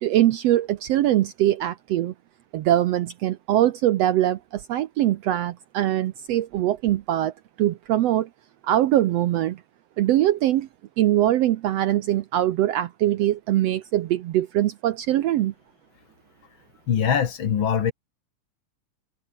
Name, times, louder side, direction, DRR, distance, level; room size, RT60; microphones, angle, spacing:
voice 1, 0.0-2.1 2.5-8.3 8.6-9.6 10.0-10.7 11.0-15.5, right 13 dB, 85° right, 1.4 m, -22 dB
voice 2, 16.9-17.9, left 8 dB, 50° left, 1.6 m, -22 dB
omnidirectional pair, 3.9 m